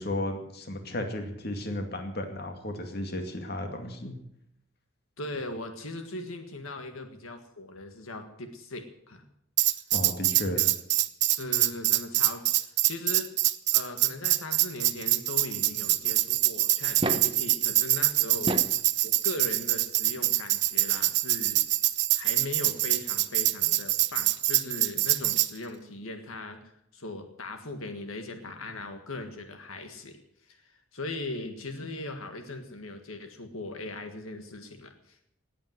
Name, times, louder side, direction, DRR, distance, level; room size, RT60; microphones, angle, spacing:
voice 1, 0.0-4.1 9.9-10.6, left 1 dB, 50° left, 5 dB, 2.3 m, -34 dB
voice 2, 5.2-9.2 10.5-10.7 11.3-13.3 13.7-18.6 19.0-21.6 22.1-26.6 26.9-35.2, left 2 dB, 85° left, 6 dB, 1.8 m, -39 dB
Tambourine, 9.6-25.5, right 17 dB, 55° right, 0.7 m, -25 dB
sound 1, 16.8-17.4 18.3-18.8 20.2-20.3 22.0-22.1 22.3-22.4, right 1 dB, 25° right, 0.8 m, -31 dB
18.5 x 8.8 x 7.9 m, 0.75 s
head